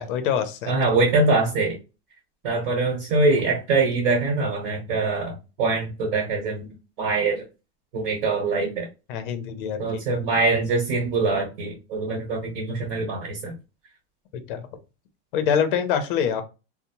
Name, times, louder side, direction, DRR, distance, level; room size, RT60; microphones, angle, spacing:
voice 1, 0.0-0.7 9.1-10.0 14.3-14.7 15.3-16.4, left 8 dB, 50° left, 10 dB, 0.5 m, -25 dB
voice 2, 0.7-1.8 2.4-6.7 7.0-7.4 7.9-8.9 9.8-13.5, right 3 dB, 55° right, -1 dB, 1.1 m, -23 dB
2.7 x 2.0 x 2.8 m, 0.29 s
supercardioid pair, 165°, 34 cm